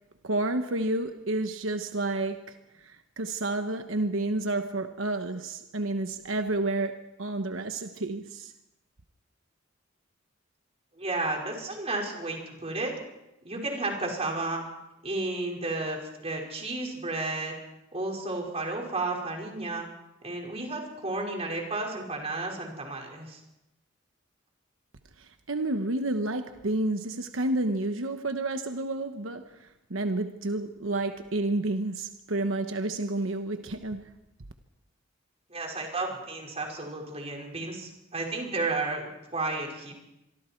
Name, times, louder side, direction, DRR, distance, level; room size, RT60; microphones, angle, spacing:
voice 1, 0.2-8.5 25.2-34.1, right 2 dB, 85° right, 7 dB, 1.1 m, -30 dB
voice 2, 11.0-12.9 13.4-14.6 15.0-17.5 17.9-19.9 20.2-23.4 35.5-39.9, right 2 dB, 30° right, 0 dB, 5.2 m, -32 dB
26.0 x 23.5 x 4.6 m, 0.90 s
head